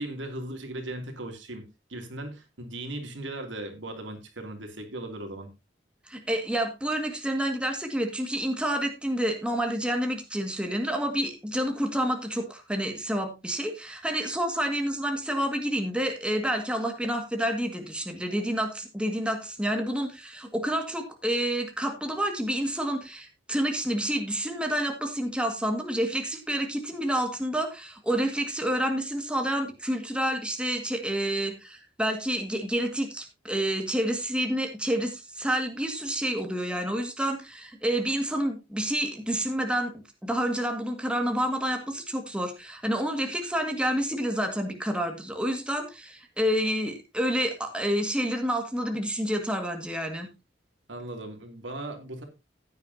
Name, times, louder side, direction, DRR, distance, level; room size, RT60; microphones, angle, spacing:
voice 1, 0.0-5.5 50.9-52.2, right 1 dB, 80° right, 4 dB, 2.6 m, -38 dB
voice 2, 6.1-39.9 40.2-50.3, equal, 5° right, 3 dB, 1.8 m, -29 dB
15.0 x 9.6 x 2.7 m, 0.25 s
head